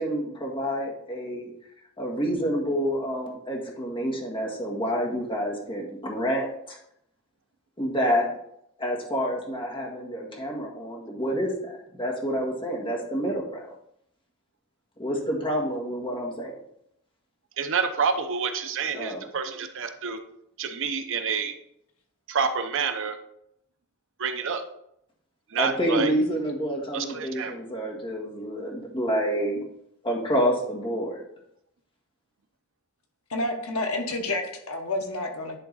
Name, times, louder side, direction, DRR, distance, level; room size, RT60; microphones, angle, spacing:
voice 1, 0.0-1.5 2.0-6.8 7.8-8.3 8.8-13.7 15.0-16.6 18.9-19.3 25.6-29.6 30.0-31.2, equal, 25° left, -2 dB, 1.7 m, -28 dB
voice 2, 17.6-20.2 20.6-21.5 22.3-23.2 24.2-24.6 25.5-26.1 26.9-27.5, right 6 dB, 60° right, 8 dB, 0.7 m, -28 dB
voice 3, 33.3-35.6, left 2 dB, 70° left, 3 dB, 1.2 m, -29 dB
10.0 x 3.8 x 4.0 m, 0.75 s
head